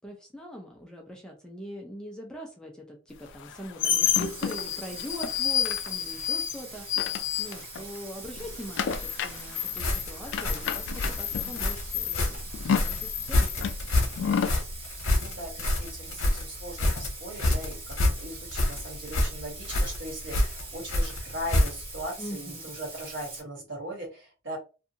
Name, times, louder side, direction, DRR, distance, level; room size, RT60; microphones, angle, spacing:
voice 1, 0.0-12.4 12.8-13.6 22.2-22.7, equal, 5° left, 0 dB, 0.5 m, -42 dB
sound 1, 3.3-8.0 8.2-14.6, left 8 dB, 60° left, 0.3 m, -29 dB
Bathtub (filling or washing), 4.1-23.4, right 3 dB, 30° right, 1.0 m, -43 dB
sound 2, 9.8-22.0, left 1 dB, 90° left, 0.8 m, -27 dB
voice 2, 15.2-24.6, right 1 dB, 60° right, -1 dB, 1.3 m, -39 dB
2.6 x 2.3 x 2.7 m, 0.32 s
head